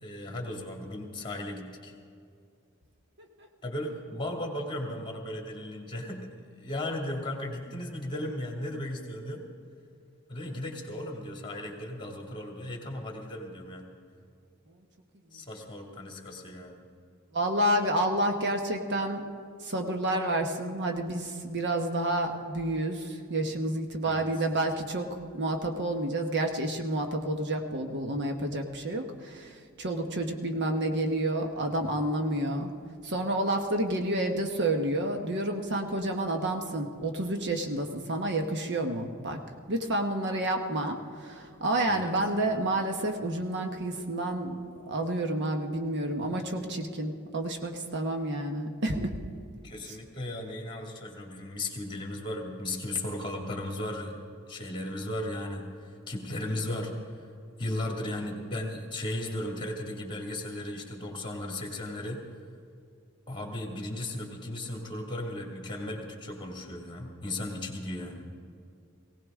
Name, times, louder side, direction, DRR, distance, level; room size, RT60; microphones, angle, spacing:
voice 1, 0.0-1.9 3.6-6.3 6.6-9.5 10.3-13.9 15.3-16.8 24.0-24.5 41.9-42.3 49.6-54.2 54.5-57.3 57.6-62.2 63.3-68.3, left 1 dB, 25° left, 1 dB, 2.2 m, -36 dB
voice 2, 17.3-19.3 19.6-32.7 33.0-39.4 39.7-44.6 44.9-49.2 49.9-50.0, right 1 dB, 55° right, 4 dB, 1.1 m, -29 dB
19.0 x 17.0 x 3.7 m, 2.4 s
head